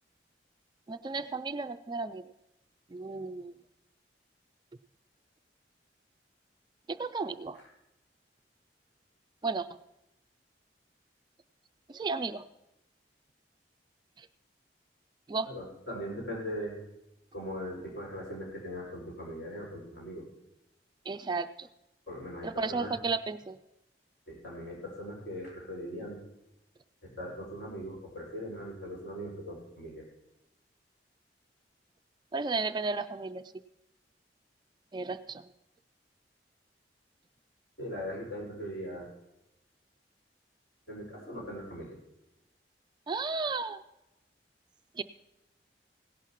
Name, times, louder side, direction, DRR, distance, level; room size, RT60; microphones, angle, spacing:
voice 1, 0.9-2.2 2.9-3.5 6.9-7.6 9.4-9.8 11.9-12.4 14.2-14.3 15.3-15.5 21.1-21.7 22.4-23.6 32.3-33.4 34.9-35.4 43.1-43.8 45.0-45.1, right 4 dB, 25° right, 11 dB, 0.3 m, -33 dB
voice 2, 15.5-16.7 17.3-20.2 22.1-22.9 24.3-26.2 27.0-30.0 37.8-39.1 40.9-42.0, equal, 65° left, -3 dB, 5.3 m, -40 dB
17.0 x 11.5 x 3.0 m, 0.91 s
head